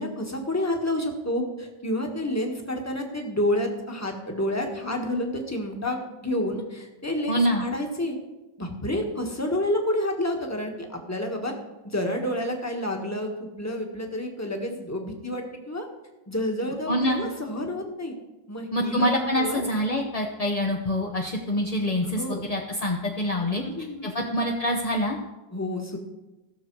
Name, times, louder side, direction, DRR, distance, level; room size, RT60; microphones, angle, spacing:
voice 1, 0.0-8.2 8.6-11.5 11.8-15.9 16.3-18.1 18.5-19.1 19.4-19.6 22.0-22.5 23.6-24.3 25.5-26.0, left 1 dB, 10° left, 2 dB, 1.2 m, -29 dB
voice 2, 7.3-7.7 16.9-17.3 18.7-23.6 24.0-25.2, equal, 35° left, -2 dB, 0.6 m, -25 dB
16.5 x 6.8 x 4.6 m, 1.1 s
omnidirectional pair, 2.0 m